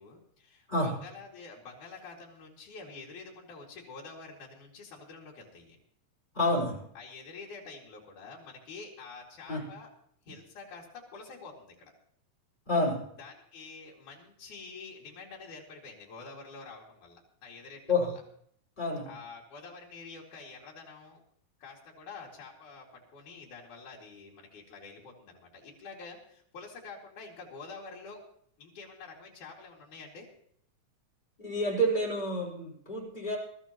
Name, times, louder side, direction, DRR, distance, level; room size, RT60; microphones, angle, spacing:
voice 1, 0.0-5.8 7.0-9.9 10.3-11.9 13.2-18.2 19.1-21.2 21.6-28.2 28.6-30.3, left 4 dB, 80° left, -2 dB, 4.0 m, -47 dB
voice 2, 6.3-6.8 9.5-9.7 12.7-13.1 17.9-18.1 18.8-19.1 31.4-33.4, left 1 dB, 15° left, -2 dB, 4.5 m, -29 dB
22.0 x 13.5 x 3.0 m, 0.65 s
omnidirectional pair, 3.5 m